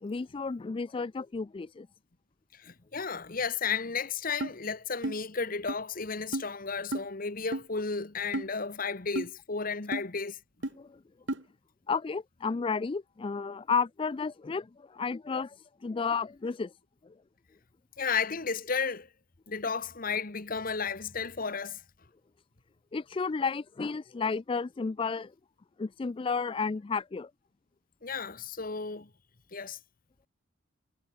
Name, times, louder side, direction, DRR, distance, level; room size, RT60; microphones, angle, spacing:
voice 1, 0.0-1.9 10.8-10.9 11.9-16.7 22.9-25.3 25.8-27.3, left 5 dB, 25° left, 0.3 m, -32 dB
voice 2, 2.6-10.4 18.0-19.1 19.5-21.8 28.0-29.1 29.5-29.8, left 5 dB, 45° left, 1.4 m, -33 dB
sound 1, 4.4-4.5 5.0-5.2 5.7-5.8 6.3-6.5 6.9-7.1 7.5-7.7 8.3-8.5 9.1-9.3 9.9-10.1 10.6-10.7 11.3-11.4, right 1 dB, 65° right, 2.0 m, -32 dB
head